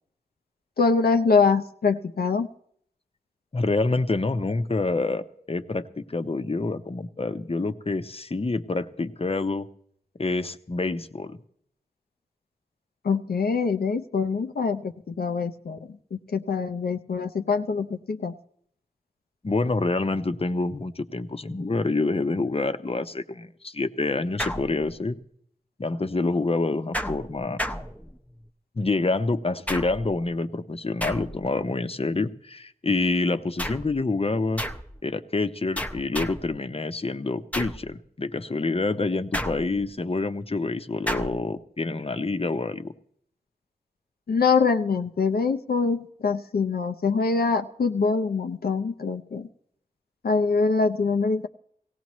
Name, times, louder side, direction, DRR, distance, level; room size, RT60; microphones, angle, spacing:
voice 1, 0.8-2.5 13.0-18.3 44.3-49.5 50.2-51.5, left 4 dB, 80° left, 7 dB, 0.6 m, -24 dB
voice 2, 3.5-9.7 10.2-11.4 19.4-25.2 25.8-27.6 28.8-34.6 35.0-42.9, left 3 dB, 40° left, 10 dB, 0.8 m, -27 dB
sound 1, 24.4-25.2 26.9-28.5 29.7-30.2 31.0-31.6 33.6-34.0 34.6-35.0 35.8-36.6 37.5-37.9 39.3-40.0 41.1-41.5, equal, 10° left, 0.8 m, -32 dB
18.0 x 16.5 x 3.1 m, 0.65 s
cardioid pair, 45°, 16 cm